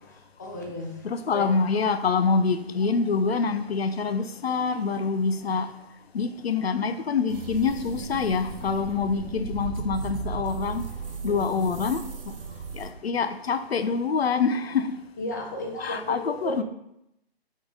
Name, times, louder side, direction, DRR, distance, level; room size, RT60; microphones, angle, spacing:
voice 1, 0.1-1.1 1.3-1.5 11.2-11.7 15.2-16.6, left 1 dB, 20° left, 0.5 m, -34 dB
voice 2, 1.0-5.7 6.1-10.9 11.2-12.3 12.7-15.0 15.8-16.6, left 5 dB, 75° left, 0.5 m, -26 dB
sound 1, 7.3-12.9, right 5 dB, 60° right, 0.7 m, -36 dB
3.7 x 3.6 x 3.6 m
figure-of-eight pair, 135°, 31 cm